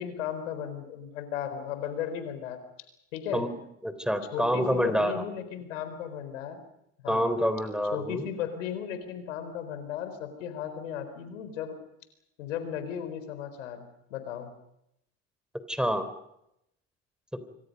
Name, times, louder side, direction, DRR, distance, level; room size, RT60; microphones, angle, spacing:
voice 1, 0.0-2.6 3.1-3.5 4.3-6.6 7.0-7.3 7.9-11.8 12.4-14.5, left 9 dB, 80° left, 10 dB, 4.1 m, -35 dB
voice 2, 3.8-5.2 7.1-8.3 15.7-16.1, equal, ahead, 11 dB, 3.7 m, -27 dB
27.0 x 24.5 x 5.4 m, 0.80 s
hypercardioid pair, 75°, 38 cm